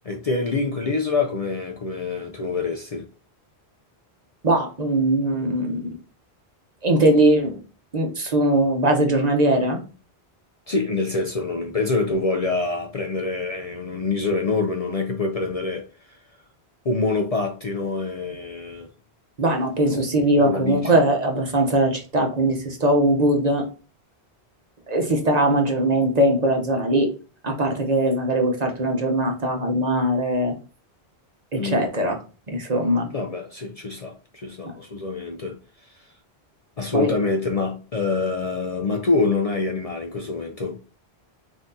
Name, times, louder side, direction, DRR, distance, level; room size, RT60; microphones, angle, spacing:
voice 1, 0.0-3.0 10.7-16.2 16.8-18.9 20.4-21.0 31.6-31.8 33.1-35.6 36.8-40.8, left 3 dB, 45° left, 0.5 m, -26 dB
voice 2, 4.4-5.9 6.8-7.6 7.9-9.8 19.4-23.7 24.9-27.1 27.4-30.5 31.5-32.2 32.5-33.1 34.6-34.7 36.9-37.1, right 1 dB, 45° right, 0.9 m, -20 dB
5.5 x 2.8 x 2.7 m
omnidirectional pair, 1.1 m